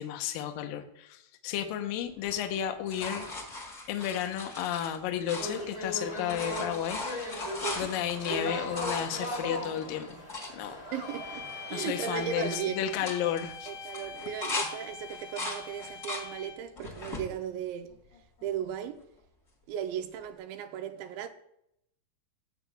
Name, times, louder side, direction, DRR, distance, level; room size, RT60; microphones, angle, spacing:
voice 1, 0.0-3.3 3.9-7.0 7.3-7.4 7.8-10.2 10.5-10.8 11.7-13.7, left 10 dB, 80° left, 2.1 m, -33 dB
sound 1, 2.2-5.9 6.2-10.5 11.1-11.2 11.4-11.8 12.1-12.5 12.9-14.7 15.1-16.3 16.8-17.3 17.9-18.6 20.2-20.3, left 2 dB, 35° left, 1.2 m, -39 dB
sound 2, 5.3-12.6, left 1 dB, 15° left, 1.1 m, -38 dB
voice 2, 10.9-13.1 13.7-17.9 18.4-19.0 19.7-21.3, right 9 dB, 85° right, 3.0 m, -36 dB
sound 3, 11.0-16.8, left 5 dB, 60° left, 3.2 m, -44 dB
15.5 x 7.8 x 2.3 m
omnidirectional pair, 5.1 m